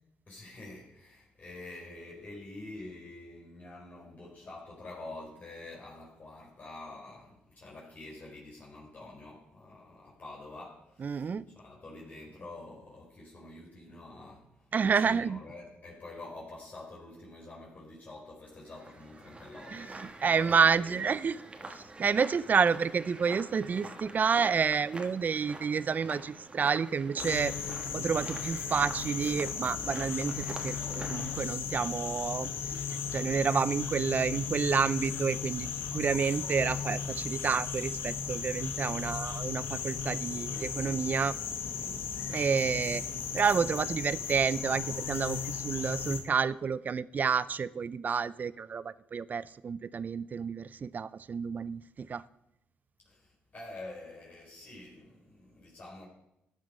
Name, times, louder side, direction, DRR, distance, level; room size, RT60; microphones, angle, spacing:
voice 1, 0.3-21.0 41.8-42.1 53.0-56.1, left 2 dB, 45° left, -3 dB, 4.1 m, -47 dB
voice 2, 11.0-11.5 14.7-15.4 19.7-19.9 20.2-21.4 21.8-27.5 27.9-30.7 31.1-32.8 33.1-35.7 35.9-41.4 42.3-43.0 43.3-52.2, right 6 dB, 45° right, 18 dB, 0.5 m, -29 dB
sound 1, 18.6-31.3, right 2 dB, 25° right, 1.8 m, -46 dB
sound 2, 27.2-46.2, left 7 dB, 80° left, 1.5 m, -36 dB
13.0 x 8.1 x 5.5 m, 0.85 s
supercardioid pair, 65°, 4 cm